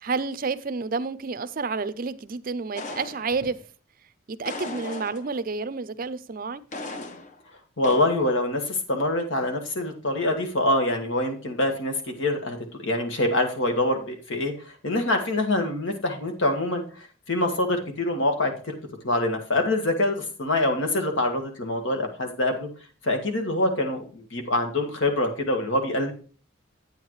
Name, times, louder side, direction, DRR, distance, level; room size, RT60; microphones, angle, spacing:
voice 1, 0.0-3.6 4.3-6.6, right 4 dB, 45° right, 0.5 m, -30 dB
sound 1, 2.7-3.6 4.4-5.5 6.7-7.4 7.8-8.2, left 2 dB, 40° left, 0.8 m, -37 dB
voice 2, 7.8-14.5 14.8-16.8 17.3-18.8 19.0-22.7 23.0-26.1, left 1 dB, 75° left, 1.8 m, -25 dB
9.1 x 8.8 x 3.2 m
head